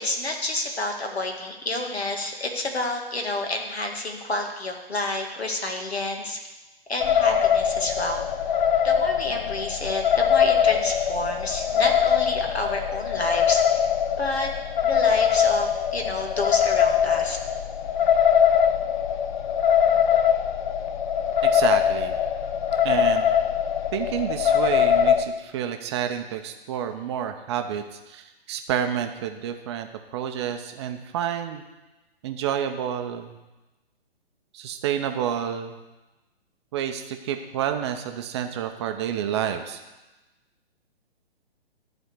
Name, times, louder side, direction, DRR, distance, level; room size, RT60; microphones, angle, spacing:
voice 1, 0.0-6.4 6.9-8.3 8.8-13.9 14.2-14.5 14.8-17.4, left 2 dB, 80° left, 3 dB, 2.1 m, -29 dB
sound 1, 7.0-25.2, left 8 dB, 50° left, 0.7 m, -22 dB
voice 2, 21.4-22.2 22.8-23.3 23.9-31.6 32.2-33.3 34.5-35.7 36.7-39.8, right 9 dB, 25° right, 6 dB, 0.7 m, -29 dB
13.0 x 4.3 x 7.9 m, 1.1 s
figure-of-eight pair, 130°, 31 cm